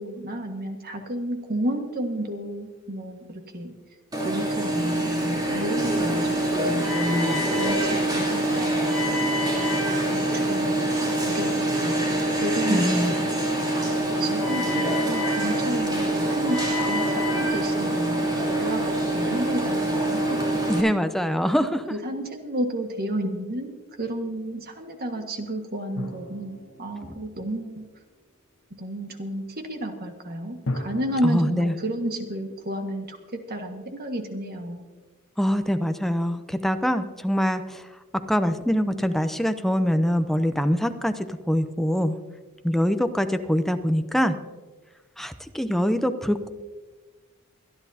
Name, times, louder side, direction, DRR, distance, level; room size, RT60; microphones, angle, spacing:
voice 1, 0.0-3.7 4.2-5.3 5.6-6.9 7.5-8.8 10.1-10.9 11.3-12.0 12.4-13.2 13.7-16.6 16.8-20.5 21.9-27.9 28.7-34.9, right 1 dB, 45° right, 4 dB, 1.6 m, -32 dB
Alarm, 4.1-20.8, right 1 dB, 20° right, 2.9 m, -25 dB
voice 2, 12.7-13.1 20.7-21.8 31.2-31.7 35.4-37.8 38.3-42.2 42.6-44.4 45.2-46.5, equal, ahead, 8 dB, 0.6 m, -24 dB
sound 1, 25.9-28.3 30.7-33.6, left 1 dB, 75° left, 1.3 m, -38 dB
24.5 x 10.5 x 2.8 m, 1.3 s
head